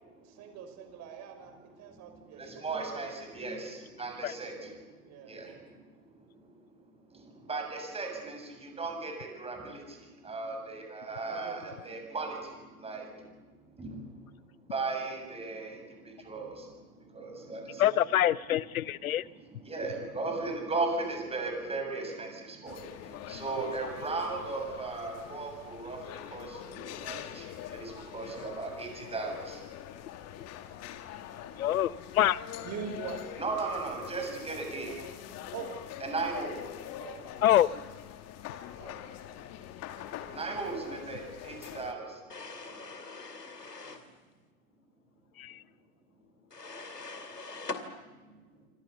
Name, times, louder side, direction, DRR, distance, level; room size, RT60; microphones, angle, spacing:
voice 1, 0.0-2.7 5.0-5.5 11.2-11.8 15.5-15.6 32.6-33.3 35.5-35.7 37.0-37.4 38.8-39.1 43.8-44.2, right 7 dB, 35° right, 6 dB, 6.1 m, -44 dB
voice 2, 1.8-5.9 6.3-6.7 7.1-17.9 19.1-29.6 33.4-34.9 36.0-36.5 40.3-42.4 48.2-48.6, right 3 dB, 10° right, 3 dB, 7.5 m, -37 dB
voice 3, 17.8-19.2 31.6-32.4 37.4-37.7 45.4-45.6, left 12 dB, 60° left, 20 dB, 1.0 m, -25 dB
sound 1, 22.7-41.9, left 11 dB, 35° left, 2.2 m, -44 dB
sound 2, 42.3-44.1 46.5-47.9, left 3 dB, 85° left, 2.7 m, -42 dB
28.5 x 25.5 x 7.0 m, 1.3 s
figure-of-eight pair, 100°, 47 cm